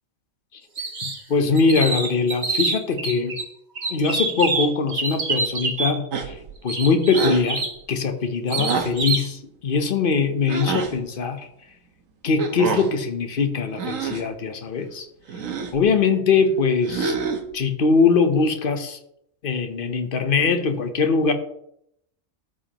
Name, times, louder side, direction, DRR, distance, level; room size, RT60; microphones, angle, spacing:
sound 1, 0.8-1.2 1.6-3.4 3.8-5.9 6.7-7.8 8.5-9.3, right 3 dB, 35° right, 1.0 m, -26 dB
voice 1, 1.0-3.3 3.9-11.5 12.2-15.1 15.7-17.1 17.5-19.0 19.4-21.3, left 4 dB, 45° left, 7 dB, 0.9 m, -22 dB
sound 2, 6.1-6.5 7.1-7.5 8.6-9.0 10.5-10.9 12.4-12.9 13.7-14.3 15.3-15.8 16.8-17.5, right 5 dB, 75° right, 1.3 m, -27 dB
13.0 x 4.9 x 2.9 m, 0.75 s
omnidirectional pair, 1.4 m